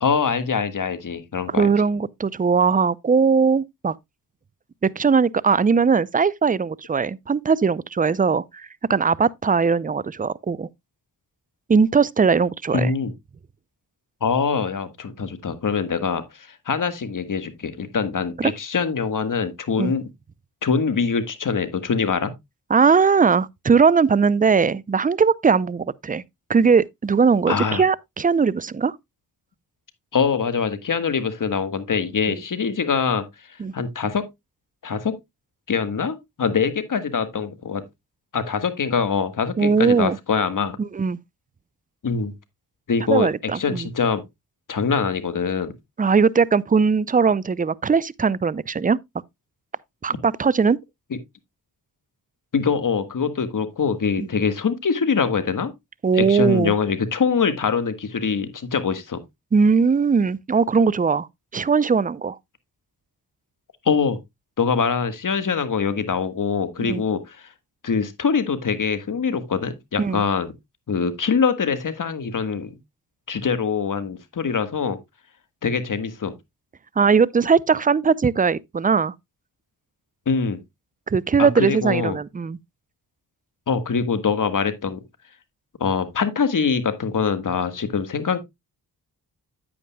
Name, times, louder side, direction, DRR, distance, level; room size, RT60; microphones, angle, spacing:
voice 1, 0.0-1.7 12.7-13.1 14.2-20.1 20.6-22.3 27.5-27.8 30.1-34.2 34.8-35.1 35.7-37.8 38.3-40.8 42.0-42.3 42.9-43.3 43.5-44.2 44.7-45.7 52.5-55.7 56.1-59.2 63.8-64.2 64.6-67.5 67.8-70.5 70.9-72.8 73.3-75.0 75.6-76.3 80.2-80.6 81.4-82.2 83.7-85.0 85.8-88.4, left 5 dB, 55° left, 1.6 m, -23 dB
voice 2, 1.5-3.9 4.8-10.7 11.7-12.9 18.4-18.5 19.8-19.9 22.7-26.2 26.5-29.0 32.3-32.4 33.6-33.7 39.6-40.2 40.8-41.2 43.1-43.9 46.0-49.0 50.0-50.8 54.2-54.3 56.0-56.7 59.5-61.3 61.5-62.4 66.8-67.0 70.0-70.2 77.0-79.1 81.1-82.6, right 5 dB, 20° right, 0.5 m, -19 dB
9.3 x 8.9 x 2.2 m
cardioid pair, 50°, 39 cm